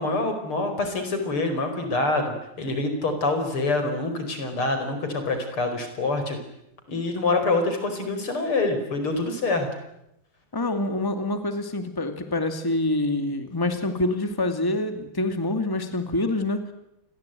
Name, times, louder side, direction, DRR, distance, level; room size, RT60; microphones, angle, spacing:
voice 1, 0.0-6.4 6.9-9.7, left 2 dB, 75° left, 7 dB, 5.8 m, -26 dB
voice 2, 10.5-16.6, left 2 dB, 10° left, 8 dB, 2.3 m, -26 dB
29.0 x 21.5 x 9.3 m, 0.84 s
omnidirectional pair, 2.4 m